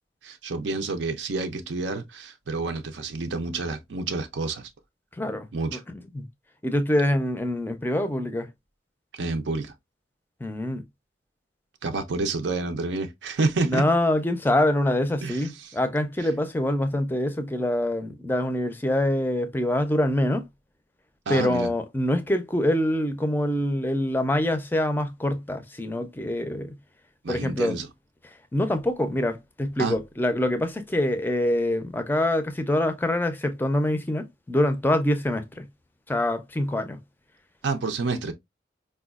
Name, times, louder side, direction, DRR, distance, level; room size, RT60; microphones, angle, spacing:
voice 1, 0.2-4.7 5.5-5.8 9.2-9.7 11.8-13.8 15.2-15.7 21.3-21.7 27.2-27.9 29.8-29.9 37.6-38.3, right 3 dB, 85° right, 0.5 m, -29 dB
voice 2, 5.1-6.2 6.6-8.5 10.4-10.8 13.6-20.5 21.3-26.8 27.3-27.8 28.2-35.7 36.1-37.0, left 1 dB, 10° left, 0.4 m, -25 dB
4.8 x 2.2 x 2.3 m
head